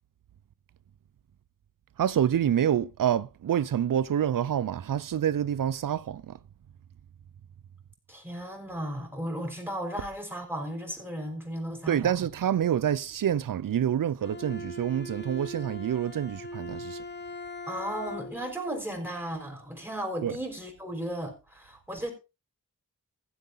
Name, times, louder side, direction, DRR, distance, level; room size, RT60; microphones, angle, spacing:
voice 1, 2.0-6.4 11.9-17.0 20.2-20.4, right 9 dB, 85° right, 0.5 m, -27 dB
voice 2, 8.1-12.2 17.7-22.1, right 1 dB, 5° right, 5.3 m, -35 dB
Bowed string instrument, 14.2-18.6, left 1 dB, 35° left, 1.3 m, -40 dB
15.5 x 7.9 x 3.9 m
wide cardioid pair, 65°, 32 cm